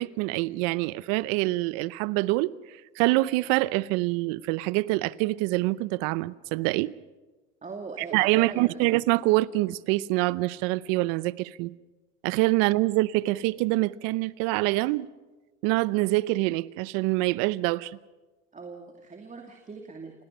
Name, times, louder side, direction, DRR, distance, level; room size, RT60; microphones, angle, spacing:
voice 1, 0.0-6.9 8.0-11.7 12.2-15.1 15.6-18.0, right 20 dB, 65° right, 0.8 m, -25 dB
voice 2, 7.6-8.9 18.5-20.2, right 4 dB, 20° right, 2.4 m, -41 dB
29.0 x 18.0 x 5.6 m
supercardioid pair, 100°, 37 cm